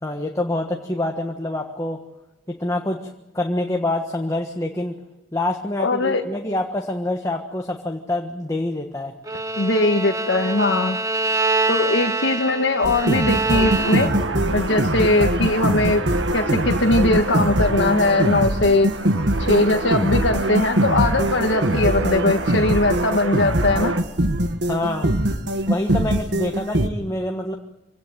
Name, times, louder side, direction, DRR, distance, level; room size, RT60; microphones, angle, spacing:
voice 1, 0.0-2.0 2.5-5.0 5.3-9.1 24.6-25.1 25.7-27.5, left 1 dB, 15° left, 2 dB, 1.4 m, -26 dB
voice 2, 5.8-6.2 9.6-11.0 11.7-14.1 14.5-16.0 16.3-18.9 19.4-24.0, left 2 dB, 70° left, 4 dB, 1.5 m, -20 dB
Bowed string instrument, 9.2-14.4, right 3 dB, 20° right, 1.8 m, -25 dB
sound 1, 12.8-26.9, right 1 dB, 65° right, 1.7 m, -22 dB
sound 2, 12.9-24.0, right 3 dB, 85° right, 1.7 m, -29 dB
25.0 x 17.5 x 9.2 m, 1.0 s
head